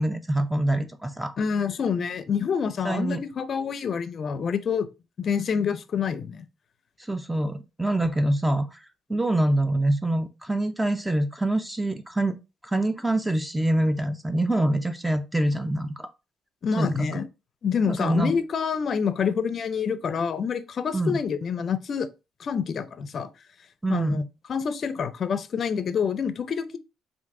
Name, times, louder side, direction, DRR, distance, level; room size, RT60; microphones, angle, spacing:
voice 1, 0.0-1.3 2.8-3.2 7.0-8.8 9.1-12.4 12.6-16.1 16.8-17.2 17.9-18.3 20.9-21.2 23.8-24.3, right 1 dB, 10° right, 0.5 m, -25 dB
voice 2, 1.4-4.9 5.2-6.5 16.6-17.2 17.6-22.1 22.4-23.3 23.9-24.2 24.5-26.8, left 6 dB, 55° left, 0.5 m, -27 dB
3.5 x 2.6 x 4.6 m
cardioid pair, 90°, 0 cm